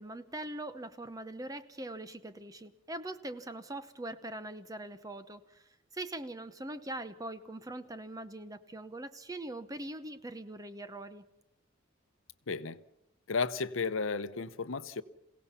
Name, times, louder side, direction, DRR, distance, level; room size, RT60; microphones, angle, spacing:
voice 1, 0.0-11.2, right 1 dB, 15° right, 0.8 m, -42 dB
voice 2, 12.5-12.8 13.3-15.0, left 4 dB, 80° left, 0.8 m, -33 dB
28.0 x 17.0 x 5.7 m
head